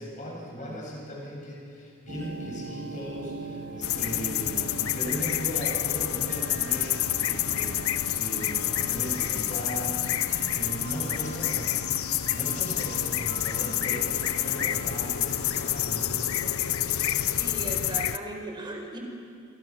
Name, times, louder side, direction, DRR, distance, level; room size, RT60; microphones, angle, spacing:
voice 1, 0.0-11.7 12.3-16.9, equal, 35° left, -2 dB, 7.4 m, -38 dB
sound 1, 2.1-17.7, right 4 dB, 55° right, 1.7 m, -42 dB
sound 2, 3.8-18.2, left 12 dB, 80° left, 0.8 m, -28 dB
voice 2, 10.3-10.7 17.4-19.0, right 1 dB, 20° right, 1 dB, 4.7 m, -38 dB
27.5 x 26.5 x 6.2 m, 2.4 s
head